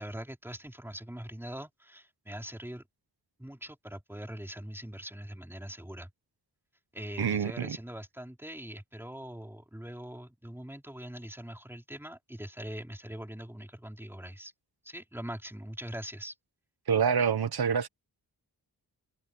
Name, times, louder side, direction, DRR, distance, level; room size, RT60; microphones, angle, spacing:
voice 1, 0.0-2.8 3.4-6.1 6.9-14.5 14.8-16.3, equal, 5° right, 4.1 m, -42 dB
voice 2, 7.2-7.8 16.9-17.9, right 7 dB, 70° right, 1.3 m, -27 dB
wide cardioid pair, 85°, 39 cm